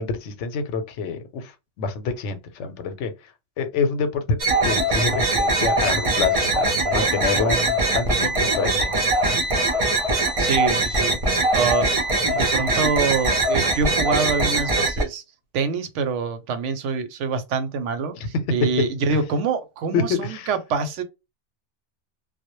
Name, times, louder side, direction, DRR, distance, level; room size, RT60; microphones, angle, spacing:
voice 1, 0.0-1.5 1.8-3.1 3.6-8.9 9.5-9.7 18.2-18.4 19.9-20.5, left 4 dB, 85° left, 0.9 m, -27 dB
sound 1, 4.4-15.0, right 2 dB, 40° right, 0.5 m, -22 dB
voice 2, 10.4-11.2 11.5-11.8 12.3-15.2 15.5-21.0, right 5 dB, 90° right, 0.9 m, -25 dB
2.1 x 2.0 x 2.9 m
omnidirectional pair, 1.2 m